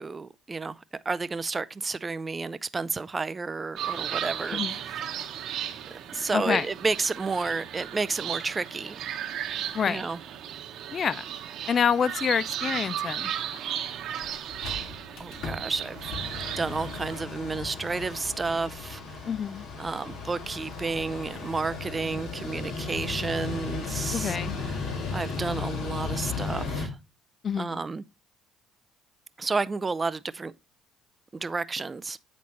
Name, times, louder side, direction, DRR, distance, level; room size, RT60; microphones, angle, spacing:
voice 1, 0.0-5.0 5.9-9.0 9.9-10.2 15.2-16.1 16.6-19.3 19.8-27.0 27.6-28.0 29.4-30.5 31.3-32.2, right 4 dB, 25° right, 0.4 m, -31 dB
sound 1, 3.8-17.2, right 10 dB, 60° right, 1.0 m, -35 dB
voice 2, 6.3-6.7 9.7-10.0 10.9-11.2 11.7-13.3 19.3-19.7 24.1-24.6 27.4-27.8, left 7 dB, 45° left, 0.4 m, -27 dB
Mechanical fan, 13.8-13.9 14.2-14.3 14.5-26.9, left 4 dB, 65° left, 1.7 m, -35 dB
8.4 x 4.1 x 3.1 m
hypercardioid pair, 65°, 0 cm